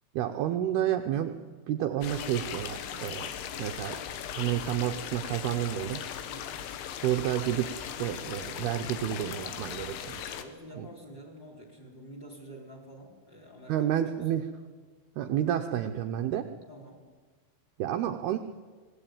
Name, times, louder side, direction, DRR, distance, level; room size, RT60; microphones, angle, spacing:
voice 1, 0.1-1.3 1.7-3.3 3.6-4.0 4.3-6.0 7.0-10.4 10.8-10.9 13.7-14.4 15.2-16.5 17.8-18.4, right 11 dB, 80° right, 5 dB, 2.4 m, -30 dB
sound 1, 2.0-10.4, left 9 dB, 75° left, 3.6 m, -38 dB
voice 2, 6.3-6.6 10.3-14.0 14.2-14.4 16.7-17.0, right 1 dB, 20° left, 2 dB, 4.5 m, -48 dB
24.5 x 19.5 x 9.1 m, 1.4 s
omnidirectional pair, 5.5 m